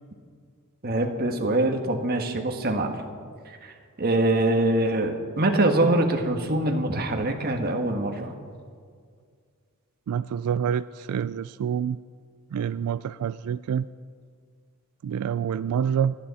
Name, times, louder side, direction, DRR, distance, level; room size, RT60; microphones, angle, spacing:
voice 1, 0.8-3.0 3.6-3.7 4.0-8.3, right 2 dB, 45° right, 5 dB, 1.4 m, -24 dB
voice 2, 10.1-12.0 12.5-13.9 15.0-16.1, right 8 dB, 85° right, 15 dB, 0.3 m, -27 dB
28.5 x 10.5 x 4.2 m, 2.1 s
head